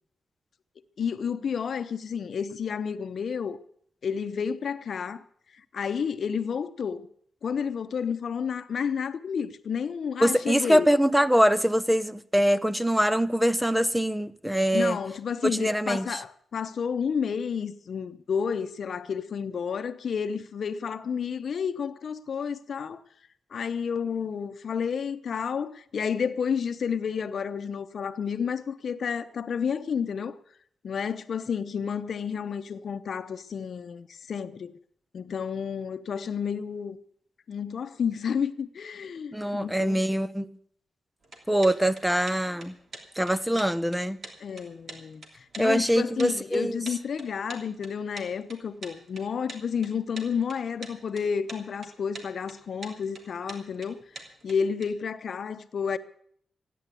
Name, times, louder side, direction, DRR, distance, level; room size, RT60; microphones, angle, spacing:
voice 1, 1.0-3.6 4.0-5.2 5.5-7.1 7.4-10.9 14.7-23.0 23.5-30.3 30.8-34.8 35.1-37.0 37.5-40.2 44.4-54.0 54.4-56.0, left 6 dB, 65° left, 0.8 m, -31 dB
voice 2, 10.2-15.0 15.4-16.2 39.3-40.5 41.5-42.7 43.2-44.2 45.6-46.8, equal, 5° right, 0.7 m, -23 dB
sound 1, 41.2-54.8, right 3 dB, 55° right, 3.0 m, -45 dB
15.0 x 10.0 x 8.3 m
cardioid pair, 90°, 0 cm